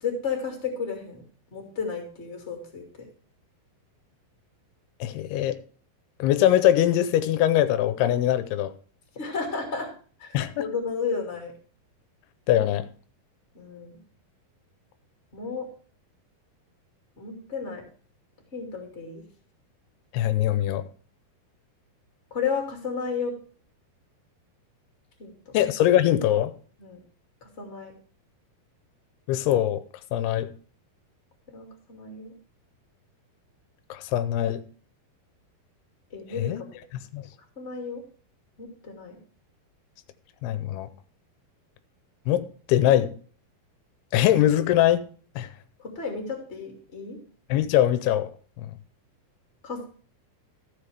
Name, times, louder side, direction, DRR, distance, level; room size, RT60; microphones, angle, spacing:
voice 1, 0.0-1.2 1.5-3.1 9.1-9.9 10.2-11.5 13.5-14.0 15.3-15.7 17.2-17.8 18.5-19.2 22.3-23.3 25.2-25.5 26.8-27.0 27.4-27.9 31.5-32.3 36.1-36.5 37.6-38.0 38.6-39.2 45.8-47.2 49.6-49.8, left 5 dB, 20° left, 2.2 m, -33 dB
voice 2, 5.0-5.6 6.2-8.7 10.3-10.7 12.5-12.9 20.1-20.9 25.5-26.5 29.3-29.8 30.1-30.5 33.9-34.6 36.4-36.6 36.9-37.2 40.4-40.9 42.3-43.1 44.1-45.1 45.4-45.5 47.5-48.3 48.6-48.7, left 12 dB, 90° left, 2.6 m, -22 dB
13.5 x 7.3 x 3.4 m
omnidirectional pair, 4.6 m